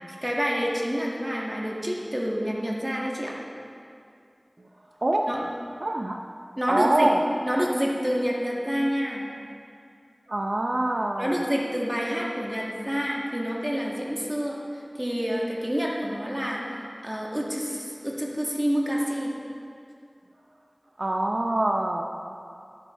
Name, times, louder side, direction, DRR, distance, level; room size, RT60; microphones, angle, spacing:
voice 1, 0.2-3.3 5.3-5.4 6.6-7.1 7.4-9.3 11.2-16.8 17.0-19.3, equal, 20° right, -3 dB, 2.1 m, -28 dB
voice 2, 5.8-6.2 6.7-7.2 10.3-11.3 21.0-22.0, right 1 dB, 80° right, 3 dB, 0.6 m, -24 dB
11.5 x 11.0 x 4.5 m, 2.5 s
wide cardioid pair, 40°, 0 cm